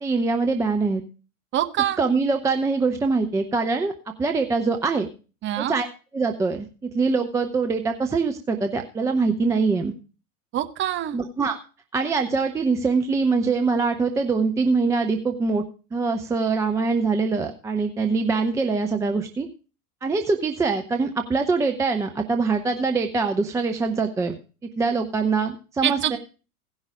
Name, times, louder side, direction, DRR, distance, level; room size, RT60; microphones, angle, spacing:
voice 1, 0.0-1.0 2.0-3.9 4.2-5.1 5.6-5.9 6.1-9.9 11.1-11.6 11.9-15.6 15.9-19.5 20.0-24.3 24.8-26.2, right 4 dB, 5° right, 5 dB, 0.5 m, -23 dB
voice 2, 1.5-2.0 5.4-5.7 10.5-11.2 25.8-26.1, right 12 dB, 25° right, 8 dB, 1.0 m, -24 dB
16.5 x 5.6 x 4.9 m, 0.34 s
figure-of-eight pair, 100°, 47 cm